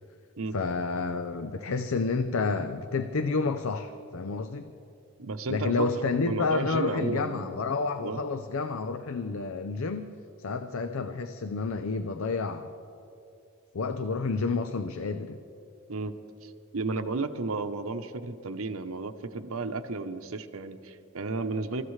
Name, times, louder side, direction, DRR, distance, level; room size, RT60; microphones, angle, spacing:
voice 1, 0.5-4.7 5.5-10.1 10.4-12.7 13.7-15.4, left 4 dB, 80° left, 9 dB, 0.6 m, -30 dB
voice 2, 5.2-7.6 8.0-8.2 15.9-16.1 16.4-21.8, right 3 dB, 80° right, 8 dB, 0.9 m, -33 dB
27.5 x 14.5 x 3.2 m, 2.6 s
head